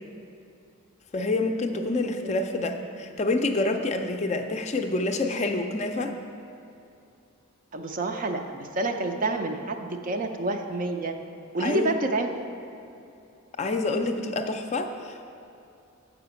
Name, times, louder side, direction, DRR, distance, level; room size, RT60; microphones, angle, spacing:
voice 1, 1.1-6.1 11.6-11.9 13.6-15.3, left 2 dB, 30° left, 5 dB, 0.4 m, -27 dB
voice 2, 7.7-11.1 11.5-12.4, right 2 dB, 40° right, 5 dB, 0.5 m, -28 dB
7.3 x 5.0 x 6.9 m, 2.7 s
head